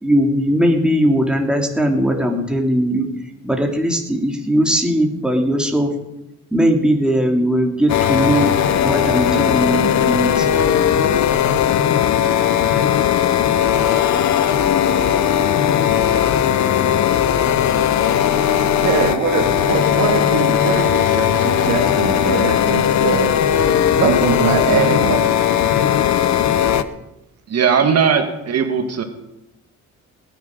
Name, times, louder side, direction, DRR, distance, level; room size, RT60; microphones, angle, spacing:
voice 1, 0.0-3.1 3.4-5.9 6.5-8.5 8.8-10.5, equal, 5° right, 1 dB, 2.9 m, -19 dB
sound 1, 7.9-26.8, left 9 dB, 65° left, 1.0 m, -17 dB
voice 2, 18.5-23.4 24.0-25.2, right 7 dB, 85° right, 5 dB, 1.9 m, -22 dB
voice 3, 27.5-29.0, right 6 dB, 55° right, 6 dB, 1.9 m, -18 dB
19.5 x 9.8 x 5.3 m, 0.92 s
cardioid pair, 90°, 30 cm